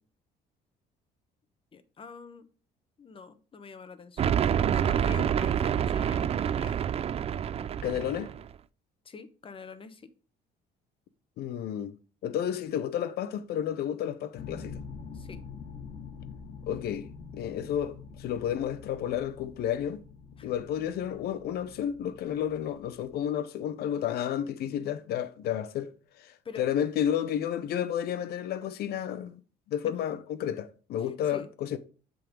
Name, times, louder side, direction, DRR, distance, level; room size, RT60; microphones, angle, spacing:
voice 1, 1.7-2.5 3.0-6.9 9.0-10.1 15.1-15.4 20.4-20.5 26.4-26.7 31.3-31.5, left 5 dB, 30° left, 0.9 m, -45 dB
sound 1, 4.2-8.5, right 9 dB, 35° right, 0.4 m, -27 dB
voice 2, 7.8-8.3 11.4-11.9 12.2-14.8 16.7-17.1 17.3-20.0 20.4-29.4 29.7-31.8, left 10 dB, 70° left, 0.8 m, -31 dB
sound 2, 14.4-23.3, left 5 dB, 50° left, 1.3 m, -45 dB
7.6 x 3.9 x 5.1 m
cardioid pair, 110°, 17 cm